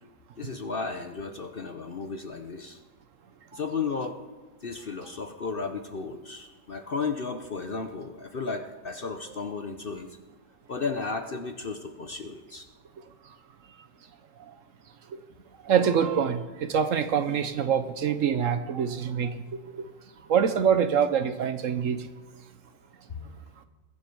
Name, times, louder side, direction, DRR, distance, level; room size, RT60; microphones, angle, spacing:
voice 1, 0.4-2.8 3.5-4.2 4.6-10.1 10.7-12.7 23.1-23.4, left 4 dB, 45° left, 7 dB, 0.8 m, -34 dB
voice 2, 15.7-19.3 19.7-19.8 20.3-22.0, right 7 dB, 60° right, 10 dB, 1.1 m, -25 dB
21.0 x 7.5 x 5.3 m, 1.4 s
omnidirectional pair, 1.6 m